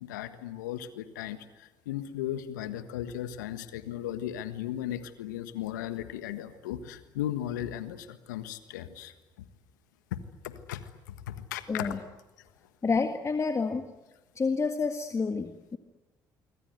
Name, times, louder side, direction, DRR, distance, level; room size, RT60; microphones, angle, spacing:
voice 1, 0.0-9.1 10.1-10.9 11.3-11.9, left 11 dB, 80° left, 11 dB, 1.5 m, -36 dB
voice 2, 11.7-12.0 12.8-13.9 14.4-15.8, left 4 dB, 30° left, 8 dB, 1.8 m, -29 dB
26.0 x 24.5 x 8.2 m, 1.1 s
hypercardioid pair, 50°, 10 cm